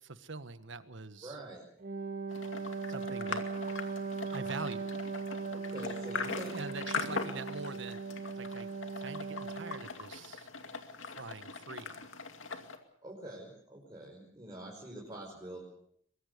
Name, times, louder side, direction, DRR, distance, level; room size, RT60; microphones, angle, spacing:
voice 1, 0.0-1.4 2.9-3.5 4.3-4.9 6.5-8.0 8.3-10.5 11.0-12.1, right 3 dB, 65° right, 12 dB, 1.5 m, -44 dB
voice 2, 1.2-1.6 5.5-6.6 13.0-15.6, right 1 dB, 20° right, -3 dB, 5.4 m, -45 dB
Wind instrument woodwind instrument, 1.8-10.0, right 4 dB, 45° right, 1.9 m, -39 dB
sound 1, 2.3-12.8, left 4 dB, 75° left, 2.5 m, -41 dB
23.0 x 22.5 x 6.8 m, 0.67 s
head